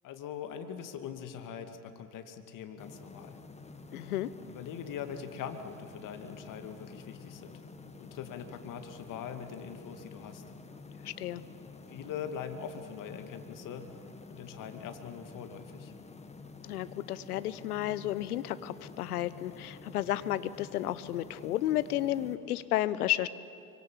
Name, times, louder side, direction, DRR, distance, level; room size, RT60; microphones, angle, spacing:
voice 1, 0.0-3.4 4.5-7.6 8.0-10.4 11.9-14.0 14.3-15.9, left 8 dB, 40° left, 7 dB, 2.5 m, -42 dB
sound 1, 2.8-22.4, left 4 dB, 15° left, 1.9 m, -49 dB
voice 2, 3.9-4.3 11.0-11.4 16.6-23.3, left 13 dB, 70° left, 16 dB, 1.1 m, -32 dB
25.0 x 24.5 x 7.5 m, 2.6 s
hypercardioid pair, 80°, 47 cm